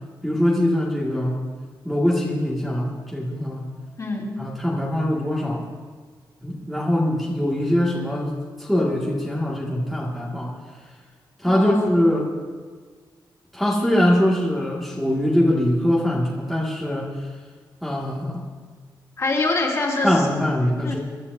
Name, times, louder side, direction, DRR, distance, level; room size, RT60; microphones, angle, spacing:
voice 1, 0.2-1.5 1.8-3.7 4.4-5.6 6.4-10.5 11.4-12.3 13.5-17.3 17.8-18.4 20.0-21.0, left 1 dB, ahead, -6 dB, 2.0 m, -22 dB
voice 2, 4.0-4.3 11.4-11.9 19.2-20.3 20.8-21.0, left 2 dB, 40° left, -3 dB, 2.9 m, -24 dB
27.0 x 12.0 x 2.7 m, 1.5 s
wide cardioid pair, 145°, 8 cm